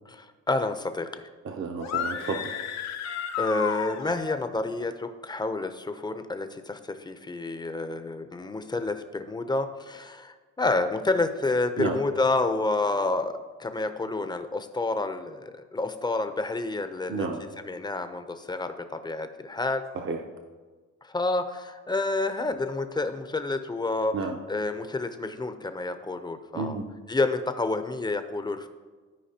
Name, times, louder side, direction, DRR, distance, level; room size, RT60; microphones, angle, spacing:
voice 1, 0.1-1.2 3.4-19.8 21.0-26.8 27.1-28.7, left 2 dB, 15° left, 9 dB, 0.6 m, -29 dB
voice 2, 1.4-2.5 11.8-12.0 17.1-17.4 19.9-20.2 24.1-24.4 26.5-26.9, right 4 dB, 45° right, 3 dB, 0.7 m, -31 dB
sound 1, 1.8-4.4, left 8 dB, 60° left, 0.7 m, -32 dB
13.5 x 4.7 x 2.9 m, 1.4 s
cardioid pair, 90°, 30 cm